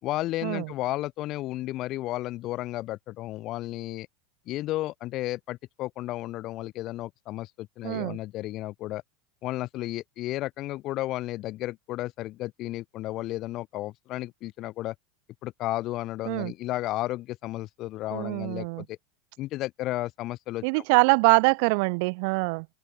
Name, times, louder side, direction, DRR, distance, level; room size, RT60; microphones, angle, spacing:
voice 1, 0.0-4.1 4.5-9.0 9.4-14.9 15.4-19.0 19.4-20.8, left 16 dB, 40° left, 4.3 m, -33 dB
voice 2, 7.8-8.2 16.3-16.5 18.1-18.8 20.6-22.6, right 33 dB, 60° right, 1.6 m, -24 dB
open air
supercardioid pair, 150°, 0 cm